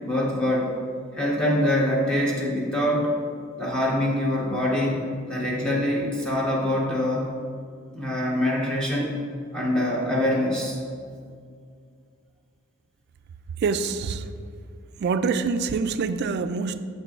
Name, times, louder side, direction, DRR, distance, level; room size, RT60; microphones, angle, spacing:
voice 1, 0.0-0.7 1.1-3.1 3.6-7.3 7.9-9.1 9.5-10.8, left 1 dB, 5° left, -5 dB, 1.0 m, -24 dB
voice 2, 13.6-14.3 15.0-16.8, right 5 dB, 55° right, 10 dB, 0.3 m, -25 dB
9.7 x 6.7 x 2.4 m, 2.3 s
head